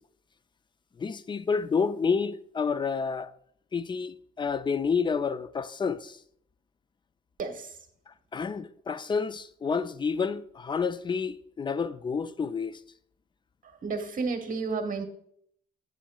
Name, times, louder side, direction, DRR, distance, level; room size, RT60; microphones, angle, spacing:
voice 1, 1.0-3.3 3.7-6.2 8.1-12.8, left 5 dB, 25° left, 0.4 m, -29 dB
voice 2, 7.4-7.9 13.6-15.0, right 4 dB, 45° right, 1.2 m, -32 dB
8.2 x 7.2 x 2.3 m
cardioid pair, 90°, 20 cm